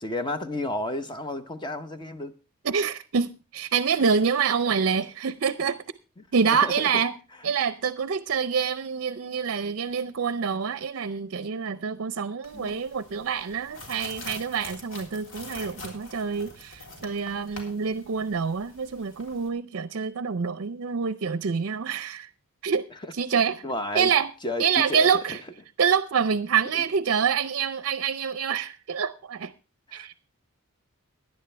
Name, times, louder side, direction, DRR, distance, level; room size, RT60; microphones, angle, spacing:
voice 1, 0.0-2.3 6.6-6.9 12.5-12.8 23.6-24.1 24.4-24.6 24.9-25.4 26.7-26.8 29.9-30.1, left 2 dB, 20° left, 0.8 m, -32 dB
voice 2, 2.6-5.8 6.3-7.1 7.4-22.3 22.6-23.6 23.9-24.3 24.6-25.4 25.8-29.5 29.9-30.1, right 6 dB, 60° right, 0.5 m, -26 dB
sound 1, 12.4-19.5, left 2 dB, 60° left, 3.4 m, -44 dB
17.0 x 10.5 x 3.3 m
head